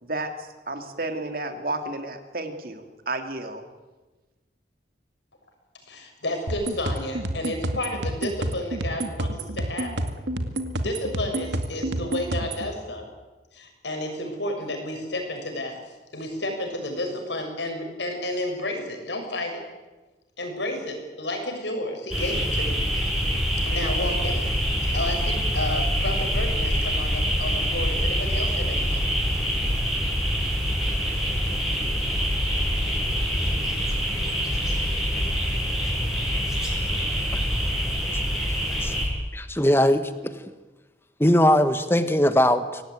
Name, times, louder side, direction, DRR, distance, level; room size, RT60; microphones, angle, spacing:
voice 1, 0.0-3.6, right 2 dB, 50° right, 6 dB, 2.9 m, -32 dB
voice 2, 5.9-10.0 10.8-13.1 13.5-15.8 16.1-19.6 20.4-22.9 23.7-24.6 24.9-29.0, left 1 dB, 85° left, 4 dB, 6.4 m, -31 dB
sound 1, 6.5-12.7, right 1 dB, 80° right, 2.1 m, -29 dB
sound 2, 22.1-39.1, equal, ahead, 6.3 m, -25 dB
voice 3, 39.3-40.4 41.2-42.8, left 1 dB, 15° left, 10 dB, 1.5 m, -20 dB
25.0 x 18.0 x 9.3 m, 1.2 s
head